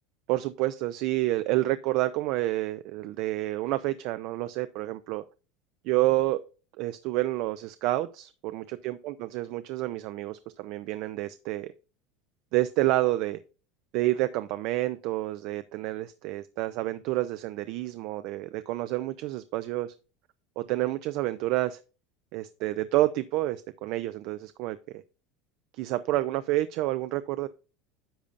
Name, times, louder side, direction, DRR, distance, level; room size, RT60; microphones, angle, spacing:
voice 1, 0.3-5.2 5.8-6.4 6.8-11.7 12.5-13.4 13.9-19.9 20.6-21.8 22.3-25.0 25.7-27.5, right 17 dB, 45° right, 0.4 m, -29 dB
10.0 x 6.9 x 2.5 m
cardioid pair, 175°, 0 cm